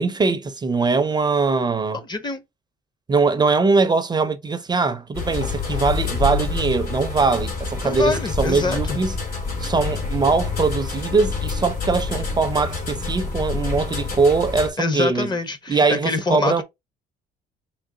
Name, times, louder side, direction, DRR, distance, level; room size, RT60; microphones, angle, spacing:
voice 1, 0.0-2.0 3.1-9.1 9.6-15.3 15.7-16.6, right 4 dB, 25° right, 0.5 m, -21 dB
voice 2, 1.9-2.4 7.8-9.0 14.8-16.6, left 3 dB, 25° left, 0.7 m, -25 dB
sound 1, 5.2-14.7, left 4 dB, 65° left, 2.2 m, -27 dB
3.8 x 3.0 x 3.8 m
cardioid pair, 110°, 17 cm